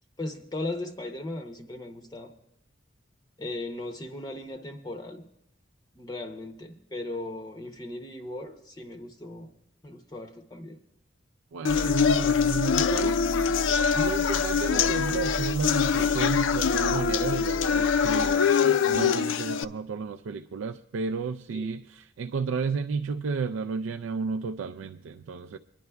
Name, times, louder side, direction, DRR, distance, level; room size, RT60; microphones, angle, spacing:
voice 1, 0.2-2.3 3.4-5.2 6.0-9.5 9.8-10.8 11.7-12.0 21.5-21.7, left 2 dB, 20° left, 0.6 m, -37 dB
voice 2, 11.5-13.5 13.9-25.6, right 5 dB, 85° right, 0.4 m, -32 dB
sound 1, 11.6-19.6, left 6 dB, 75° left, 0.4 m, -24 dB
sound 2, 11.7-18.4, equal, 30° right, 0.5 m, -37 dB
26.0 x 10.5 x 2.3 m
head